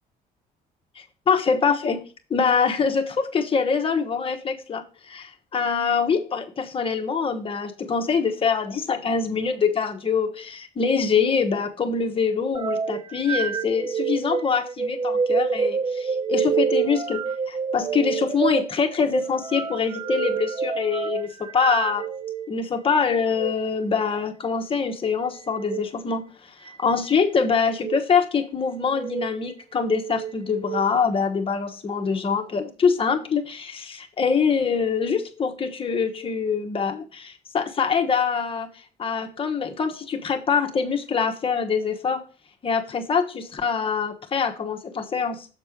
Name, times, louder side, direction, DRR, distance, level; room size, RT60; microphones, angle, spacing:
voice 1, 1.3-2.0 2.3-22.1 22.5-26.2 26.6-38.7 39.0-42.2 42.6-45.5, left 5 dB, 30° left, 1.2 m, -24 dB
sound 1, 12.5-22.5 23.2-23.5 25.5-25.8 26.7-27.2 27.7-28.0 28.8-29.3 29.8-30.8, right 6 dB, 25° right, 0.4 m, -28 dB
7.5 x 4.3 x 5.1 m
cardioid pair, 110°, 17 cm